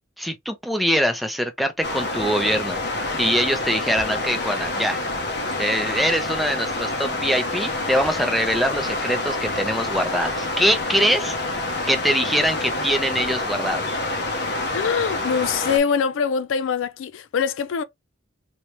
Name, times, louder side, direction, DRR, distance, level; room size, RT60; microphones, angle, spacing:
voice 1, 0.2-2.8 3.2-5.0 5.6-11.4 11.9-13.8, equal, ahead, 0.5 m, -23 dB
sound 1, 1.8-15.8, left 2 dB, 55° left, 0.8 m, -27 dB
voice 2, 14.7-17.8, left 6 dB, 80° left, 0.4 m, -23 dB
3.0 x 2.8 x 3.2 m
head